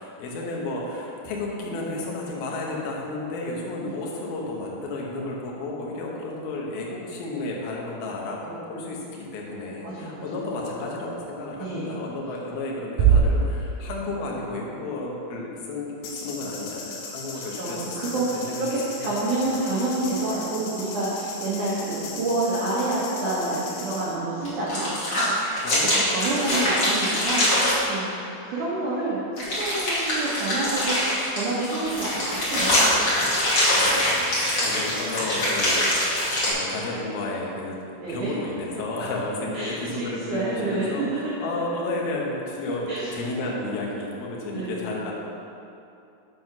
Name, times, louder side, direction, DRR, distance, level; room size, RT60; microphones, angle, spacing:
voice 1, 0.0-17.8 18.1-18.6 18.9-19.5 25.6-26.2 33.7-37.8 38.1-45.1, left 2 dB, 65° left, -2 dB, 2.5 m, -32 dB
voice 2, 9.8-10.3 11.6-12.0 17.6-25.6 26.1-28.1 28.4-30.9 31.3-33.3 38.0-38.3 39.5-40.9 42.9-43.1 44.5-44.9, right 2 dB, 85° right, -8 dB, 1.7 m, -28 dB
sound 1, 13.0-14.4, right 6 dB, 60° right, 3.0 m, -21 dB
sound 2, 16.0-24.2, left 4 dB, 85° left, 4.1 m, -38 dB
sound 3, 24.4-27.8 29.4-36.5, left 1 dB, 40° left, 2.5 m, -23 dB
7.8 x 7.3 x 6.1 m, 2.7 s
omnidirectional pair, 6.0 m